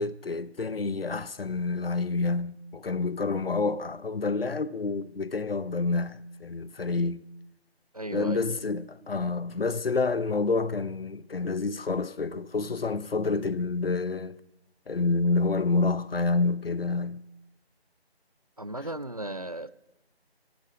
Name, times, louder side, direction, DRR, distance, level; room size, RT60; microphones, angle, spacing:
voice 1, 0.0-7.3 8.1-14.4 14.9-17.3, left 3 dB, 60° left, 0.8 m, -28 dB
voice 2, 7.9-8.4 18.6-19.7, right 1 dB, 35° right, 0.5 m, -35 dB
22.5 x 12.0 x 4.9 m
figure-of-eight pair, 170°, 32 cm